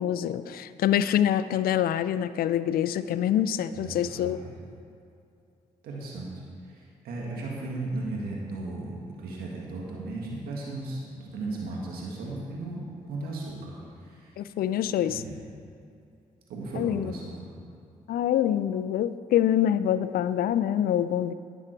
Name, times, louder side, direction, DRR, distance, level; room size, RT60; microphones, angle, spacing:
voice 1, 0.0-4.4 14.4-15.2 16.8-17.1 18.1-21.3, left 10 dB, 75° left, 14 dB, 0.4 m, -25 dB
voice 2, 3.7-4.6 5.8-14.4 14.9-15.3 16.5-17.5, right 2 dB, 85° right, -3 dB, 1.8 m, -36 dB
11.0 x 9.0 x 4.5 m, 2.6 s
supercardioid pair, 50°, 15 cm